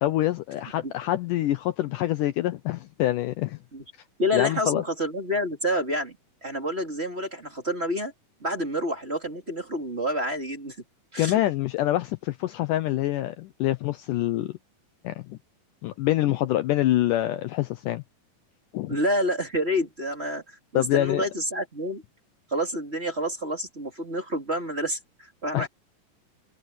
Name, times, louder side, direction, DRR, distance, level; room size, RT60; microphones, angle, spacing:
voice 1, 0.0-3.6 4.3-4.8 11.2-14.5 15.0-15.4 15.8-18.0 18.7-19.0 20.8-21.2 25.5-25.7, left 14 dB, 75° left, 2.1 m, -25 dB
voice 2, 4.2-8.1 8.4-10.8 11.1-11.4 18.9-22.0 22.5-25.7, equal, 20° right, 2.9 m, -28 dB
omnidirectional pair, 4.2 m